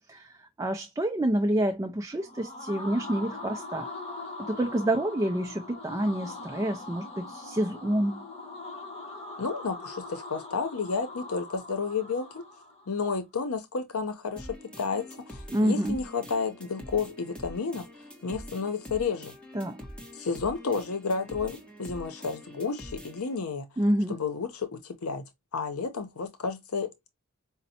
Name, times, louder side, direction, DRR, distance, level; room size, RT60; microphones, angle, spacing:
voice 1, 0.0-3.9 4.5-8.2 15.5-16.0 19.5-19.8 23.8-24.2, right 1 dB, 15° right, 0.4 m, -28 dB
sound 1, 2.1-13.0, left 2 dB, 30° left, 1.0 m, -42 dB
voice 2, 9.4-12.5 12.9-17.9 18.2-19.3 20.1-23.7 24.1-25.2 25.5-27.1, left 5 dB, 85° left, 0.7 m, -31 dB
sound 2, 14.4-23.4, equal, 5° left, 1.0 m, -45 dB
5.1 x 2.1 x 2.7 m
head